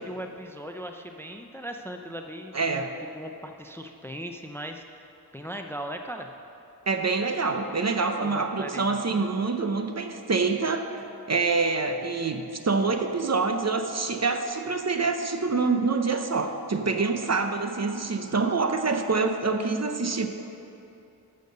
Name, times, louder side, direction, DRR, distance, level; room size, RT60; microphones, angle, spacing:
voice 1, 0.0-2.8 3.1-6.3 8.2-9.2, equal, 5° left, 5 dB, 0.5 m, -39 dB
voice 2, 2.5-2.9 6.9-11.0 11.3-20.3, right 4 dB, 40° right, 6 dB, 0.7 m, -26 dB
12.0 x 6.6 x 6.6 m, 2.8 s
wide cardioid pair, 90°, 39 cm